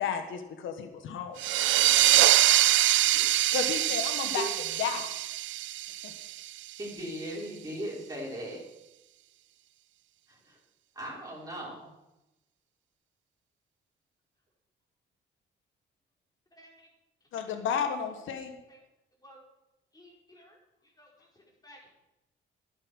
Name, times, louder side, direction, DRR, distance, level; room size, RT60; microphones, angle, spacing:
voice 1, 0.0-1.6 3.5-4.5 4.8-5.1 6.0-6.1 17.3-18.5, left 7 dB, 80° left, 7 dB, 1.4 m, -33 dB
sound 1, 1.4-6.7, right 15 dB, 75° right, 0.4 m, -24 dB
voice 2, 6.8-8.6 10.3-10.6 10.9-11.9, right 1 dB, 20° right, -5 dB, 5.3 m, -38 dB
voice 3, 16.5-16.9 17.2-17.3 18.7-18.8 19.2-19.4 19.9-20.6 20.8-21.9, equal, 20° left, -2 dB, 5.0 m, -56 dB
11.5 x 8.9 x 6.2 m, 0.96 s
cardioid pair, 90°, 20 cm